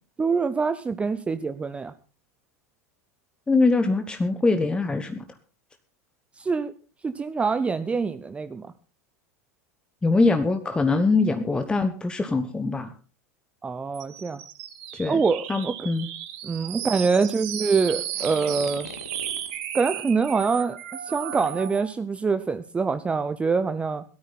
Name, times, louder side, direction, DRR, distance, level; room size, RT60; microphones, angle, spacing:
voice 1, 0.2-1.9 6.4-6.7 7.0-8.7 13.6-14.4 15.1-15.7 16.4-18.9 19.7-24.0, right 5 dB, 15° right, 11 dB, 0.7 m, -25 dB
voice 2, 3.5-5.2 10.0-12.9 14.9-15.2 15.5-16.1, left 3 dB, 10° left, 8 dB, 1.2 m, -23 dB
sound 1, 13.9-21.9, right 10 dB, 50° right, 2.5 m, -35 dB
sound 2, 18.0-19.6 21.3-21.8, left 3 dB, 80° left, 2.3 m, -41 dB
18.0 x 13.0 x 4.2 m, 0.36 s
figure-of-eight pair, 80°, 8 cm